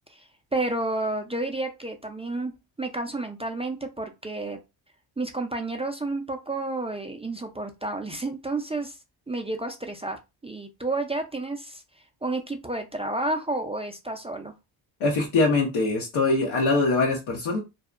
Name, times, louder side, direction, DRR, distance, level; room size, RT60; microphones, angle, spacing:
voice 1, 0.1-2.5 2.8-4.6 5.2-9.0 9.3-11.8 12.2-14.5, right 2 dB, 15° right, 4 dB, 0.3 m, -31 dB
voice 2, 15.0-17.6, left 3 dB, 80° left, -1 dB, 0.8 m, -23 dB
2.7 x 2.0 x 2.4 m, 0.25 s
supercardioid pair, 55°, 49 cm